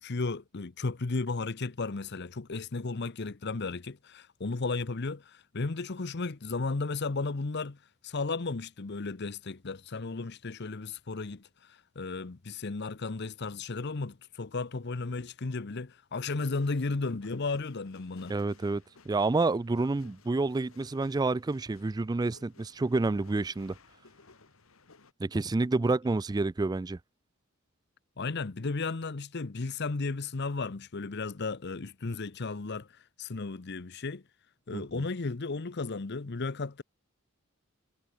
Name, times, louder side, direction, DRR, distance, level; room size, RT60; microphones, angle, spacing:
voice 1, 0.0-7.8 8.0-11.4 12.0-18.3 28.2-32.9 33.2-34.2 34.7-36.8, left 3 dB, 55° left, 0.8 m, -34 dB
sound 1, 16.4-25.1, left 3 dB, 85° left, 2.1 m, -59 dB
voice 2, 18.3-23.7 25.2-27.0 34.7-35.0, right 3 dB, 20° right, 0.3 m, -29 dB
head